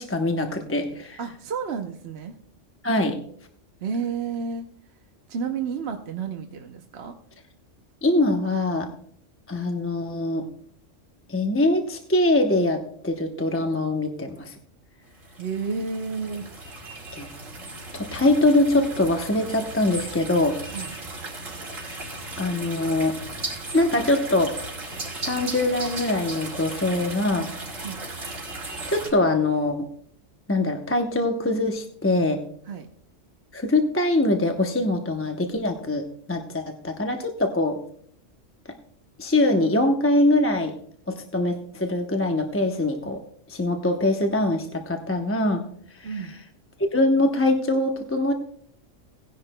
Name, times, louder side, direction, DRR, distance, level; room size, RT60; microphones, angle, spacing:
voice 1, 0.0-1.2 2.8-3.2 8.0-8.9 9.5-10.5 11.3-14.5 17.1-17.3 17.9-20.6 21.7-22.1 22.4-23.2 23.7-24.5 25.2-27.5 28.7-29.9 30.5-32.4 33.5-37.8 39.2-40.8 41.1-43.2 43.5-45.6 45.9-46.3 46.9-48.3, left 2 dB, 15° left, 3 dB, 0.6 m, -23 dB
voice 2, 1.2-2.3 3.8-4.6 5.3-7.2 15.4-16.5 20.7-20.9 27.8-28.0 32.7-32.9 46.0-46.3, right 5 dB, 60° right, 4 dB, 0.9 m, -31 dB
sound 1, 15.2-29.1, right 2 dB, 85° right, 2.8 m, -36 dB
18.0 x 10.5 x 2.2 m, 0.62 s
omnidirectional pair, 1.3 m